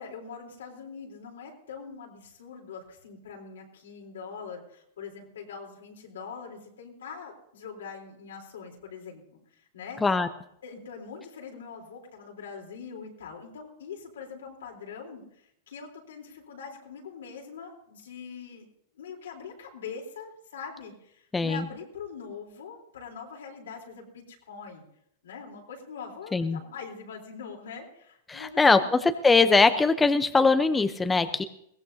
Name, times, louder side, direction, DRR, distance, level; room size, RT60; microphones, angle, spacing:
voice 1, 0.0-10.0 10.6-18.7 19.0-24.8 25.2-28.9, left 6 dB, 90° left, 0 dB, 3.6 m, -43 dB
voice 2, 21.3-21.7 26.3-26.6 28.3-31.4, left 4 dB, 10° left, 9 dB, 0.7 m, -21 dB
21.5 x 16.5 x 2.8 m, 0.72 s
hypercardioid pair, 130°, 0 cm